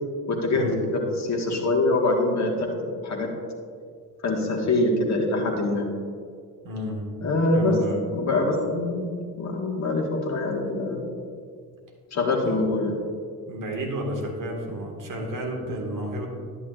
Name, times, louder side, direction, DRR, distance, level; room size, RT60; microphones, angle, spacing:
voice 1, 0.3-3.3 4.2-5.9 7.2-7.7 8.1-9.1 9.4-11.0 12.1-13.0, left 2 dB, 35° left, 0 dB, 1.7 m, -24 dB
voice 2, 6.6-7.1 7.4-8.0 12.4-12.5 13.5-16.3, equal, 40° right, 1 dB, 1.8 m, -31 dB
11.0 x 8.7 x 2.5 m, 2.1 s
figure-of-eight pair, 50°, 48 cm